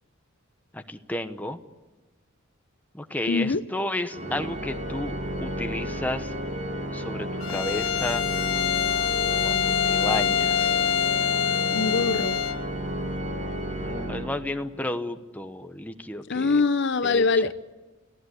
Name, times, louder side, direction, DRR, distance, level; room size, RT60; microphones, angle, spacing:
voice 1, 0.7-1.6 2.9-5.2 5.4-6.3 6.9-8.2 9.4-10.8 13.8-16.6 17.0-17.2, left 1 dB, 10° left, 1.0 m, -32 dB
voice 2, 3.3-3.6 11.7-12.4 16.3-17.5, left 4 dB, 60° left, 0.7 m, -23 dB
Organ, 4.1-14.9, equal, 40° right, 2.6 m, -32 dB
Bowed string instrument, 7.4-12.6, left 9 dB, 90° left, 1.5 m, -25 dB
29.5 x 16.0 x 8.2 m
head